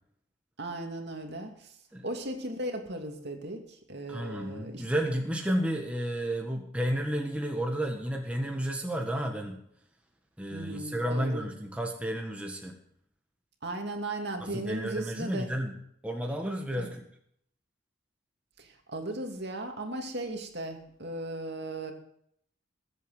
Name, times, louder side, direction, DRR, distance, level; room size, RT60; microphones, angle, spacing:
voice 1, 0.6-1.7 2.0-4.8 10.5-11.5 13.6-15.5 16.8-16.9 18.6-21.9, right 1 dB, 50° right, 3 dB, 2.6 m, -37 dB
voice 2, 4.1-9.6 10.4-12.8 14.4-15.7 16.0-17.0, equal, 5° right, 1 dB, 1.6 m, -32 dB
21.0 x 8.4 x 7.6 m, 0.69 s
head